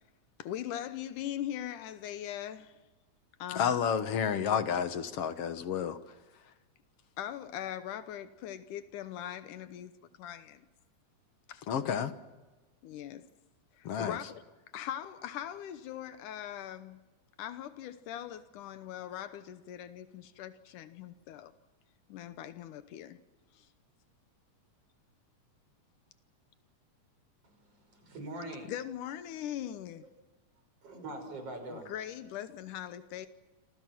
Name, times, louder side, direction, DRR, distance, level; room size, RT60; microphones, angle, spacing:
voice 1, 0.4-2.8 3.4-3.8 7.2-9.9 10.2-10.7 11.5-11.7 12.8-13.3 13.7-14.4 14.7-17.0 17.4-21.5 22.1-23.2 23.5-23.7 28.7-30.1 31.7-33.3, left 11 dB, 85° left, 2.5 m, -41 dB
voice 2, 3.5-6.0 11.7-12.1 13.8-14.2, left 7 dB, 60° left, 2.0 m, -30 dB
voice 3, 27.4-28.7 30.8-31.9, right 1 dB, 50° right, 6.8 m, -43 dB
27.5 x 27.0 x 6.1 m
omnidirectional pair, 3.6 m